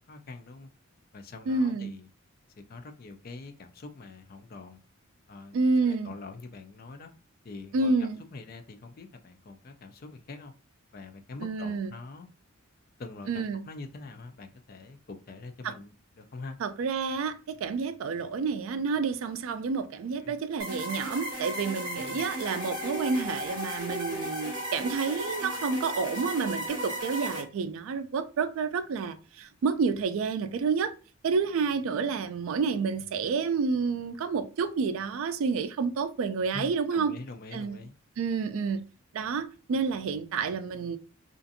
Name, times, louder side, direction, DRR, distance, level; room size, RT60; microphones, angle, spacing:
voice 1, 0.1-0.7 1.1-2.1 2.7-4.8 5.3-7.1 7.4-10.5 10.9-12.3 13.0-16.6 20.2-20.3 21.9-22.3 36.5-38.0, left 3 dB, 45° left, 0.4 m, -44 dB
voice 2, 1.5-1.9 5.5-6.1 7.7-8.2 11.4-11.9 13.3-13.6 15.6-15.7 16.6-30.9 31.2-37.1 37.5-37.8 38.2-38.8 39.1-41.0, right 4 dB, 70° right, 0.3 m, -29 dB
sound 1, 20.6-27.4, equal, 20° right, 1.2 m, -35 dB
2.5 x 2.4 x 2.6 m
head